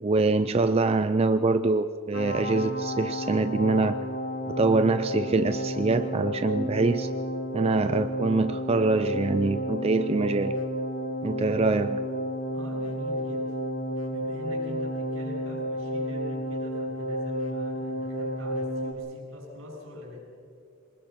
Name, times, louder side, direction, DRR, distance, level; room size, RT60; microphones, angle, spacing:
voice 1, 0.0-4.0 4.5-7.1 7.5-10.6 11.2-12.0, right 3 dB, 30° right, 10 dB, 0.4 m, -24 dB
sound 1, 2.1-18.9, equal, 70° left, 2.6 m, -31 dB
voice 2, 12.5-13.6 14.1-20.2, equal, 75° right, 0 dB, 6.3 m, -43 dB
22.5 x 20.5 x 5.9 m, 2.5 s
head